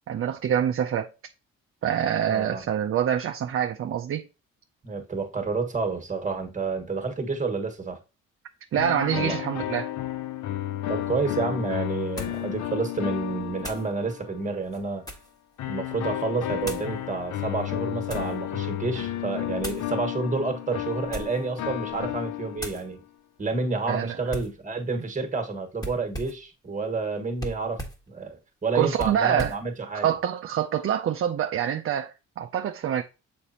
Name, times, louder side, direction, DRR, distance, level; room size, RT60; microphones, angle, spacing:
voice 1, 0.1-1.1 1.8-4.3 8.7-9.9 23.9-24.2 28.7-29.6 30.0-33.0, right 9 dB, 45° right, 0.5 m, -26 dB
voice 2, 2.3-2.6 4.8-8.0 9.1-9.4 10.9-15.0 15.7-23.0 23.4-27.8 28.1-30.1, right 4 dB, 25° right, 1.6 m, -29 dB
sound 1, 8.7-14.5 15.6-23.0, left 12 dB, 70° left, 0.6 m, -32 dB
sound 2, 11.0-11.1 12.2-12.5 13.6-13.9 14.6-15.4 16.6-16.9 17.7-18.4 19.6-19.9 21.0-21.5 21.9-22.2 22.6-22.9 24.3-24.6 25.8-26.5 27.4-28.1 29.0-29.7, equal, 10° left, 1.5 m, -38 dB
6.6 x 5.1 x 2.9 m
cardioid pair, 90°, 30 cm